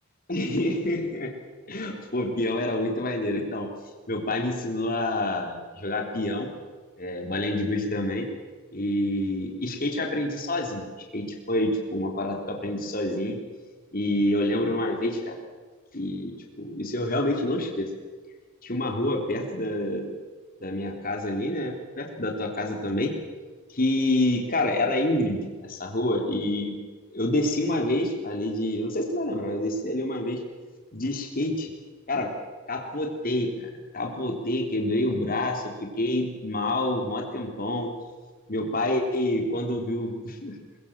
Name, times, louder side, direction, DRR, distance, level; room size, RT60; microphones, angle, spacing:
voice 1, 0.3-1.3 1.7-3.7 4.1-6.5 7.0-8.3 8.7-13.4 13.9-15.4 15.9-17.9 18.6-20.1 20.6-23.1 23.7-26.8 27.1-30.4 30.9-31.7 32.1-32.3 32.7-37.9 38.5-40.6, left 1 dB, 40° left, 2 dB, 3.5 m, -27 dB
22.5 x 21.5 x 7.4 m, 1.4 s
head